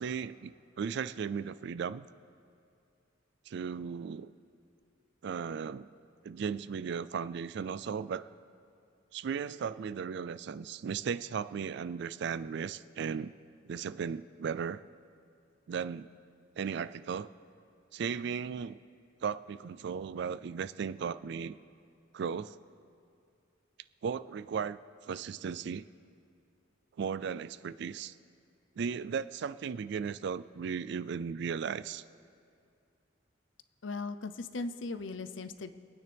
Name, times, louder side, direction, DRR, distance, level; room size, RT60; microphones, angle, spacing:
voice 1, 0.0-2.1 3.5-4.3 5.2-5.9 6.2-8.3 9.1-13.3 13.6-14.8 15.7-16.1 16.6-17.3 17.9-18.8 19.2-21.6 22.1-22.5 24.0-24.8 25.1-25.9 27.0-28.2 28.8-32.0, right 6 dB, 60° right, 17 dB, 0.3 m, -36 dB
voice 2, 33.8-35.7, left 3 dB, 75° left, 11 dB, 0.6 m, -38 dB
25.0 x 9.4 x 3.4 m, 2.4 s
head